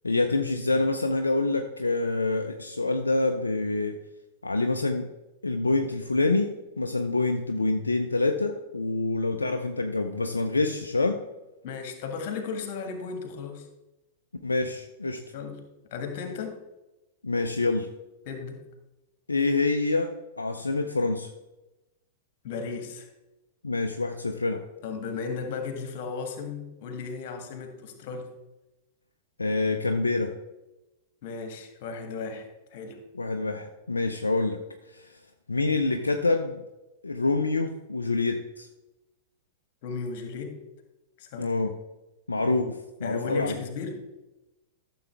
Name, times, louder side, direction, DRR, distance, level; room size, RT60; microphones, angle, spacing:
voice 1, 0.0-4.0 4.4-5.1 5.4-11.2 14.4-15.2 17.2-17.9 19.3-21.3 23.6-24.6 29.4-30.3 33.1-34.6 34.9-35.2 35.5-36.6 37.0-38.7 41.4-41.7 42.3-43.5, left 3 dB, 75° left, 5 dB, 0.6 m, -26 dB
voice 2, 11.6-13.7 15.3-16.6 18.3-18.6 22.4-23.1 24.8-28.3 31.2-33.0 39.8-40.6 41.2-41.6 43.0-44.0, left 5 dB, 45° left, 5 dB, 1.8 m, -35 dB
13.0 x 7.0 x 3.5 m, 1.0 s
figure-of-eight pair, 95°, 0 cm